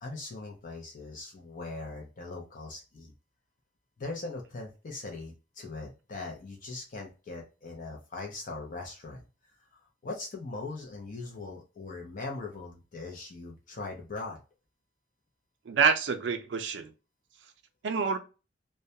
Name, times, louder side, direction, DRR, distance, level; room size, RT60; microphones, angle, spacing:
voice 1, 0.0-3.1 4.0-9.2 10.0-14.4, left 3 dB, 45° left, 0.5 m, -40 dB
voice 2, 15.7-16.9 17.8-18.2, right 6 dB, 75° right, 0.4 m, -27 dB
2.2 x 2.1 x 2.6 m
head